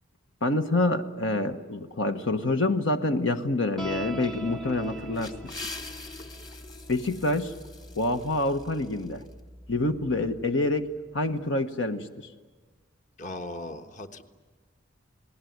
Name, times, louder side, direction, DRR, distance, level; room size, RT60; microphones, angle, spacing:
voice 1, 0.4-5.3 6.9-7.5 7.9-9.2 9.7-10.9 11.1-12.3, left 2 dB, 70° left, 7 dB, 1.3 m, -27 dB
sound 1, 3.8-10.4, right 1 dB, ahead, 0.8 m, -42 dB
Gurgling / Sink (filling or washing), 4.5-8.9, left 3 dB, 55° left, 2.4 m, -51 dB
sound 2, 4.8-9.4, left 3 dB, 20° left, 1.5 m, -44 dB
voice 2, 13.2-14.2, left 1 dB, 40° left, 7 dB, 1.4 m, -38 dB
29.5 x 20.0 x 9.4 m, 1.4 s
head